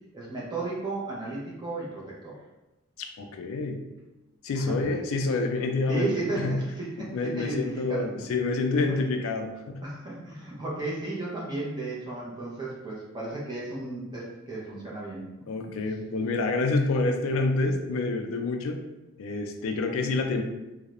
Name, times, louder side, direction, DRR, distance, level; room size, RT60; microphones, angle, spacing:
voice 1, 0.1-2.3 4.5-4.7 5.9-8.1 9.8-15.3, right 2 dB, 20° right, -6 dB, 0.4 m, -34 dB
voice 2, 3.0-3.8 4.4-6.6 7.0-9.8 15.5-18.8 19.2-20.4, left 3 dB, 80° left, 5 dB, 0.3 m, -28 dB
2.3 x 2.0 x 2.9 m, 1.0 s
head